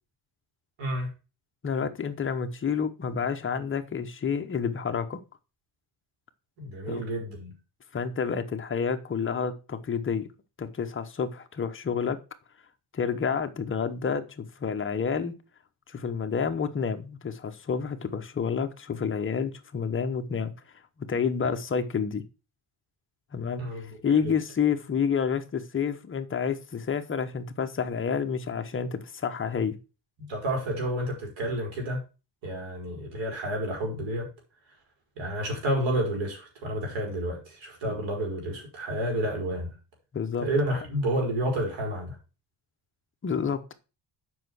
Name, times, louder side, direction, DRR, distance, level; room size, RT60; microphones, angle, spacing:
voice 1, 0.8-1.1 6.6-7.5 23.6-23.9 24.2-24.3 30.2-32.0 32.4-34.2 35.2-39.7 40.4-42.2, right 1 dB, 90° right, 1 dB, 5.0 m, -30 dB
voice 2, 1.6-5.2 6.9-7.0 7.9-10.3 10.6-12.2 12.9-15.3 15.9-20.5 21.0-22.2 23.3-29.7 37.9-38.0 40.1-40.5 43.2-43.7, left 6 dB, 30° left, 7 dB, 0.9 m, -29 dB
7.5 x 5.6 x 6.3 m, 0.32 s
cardioid pair, 165°, 44 cm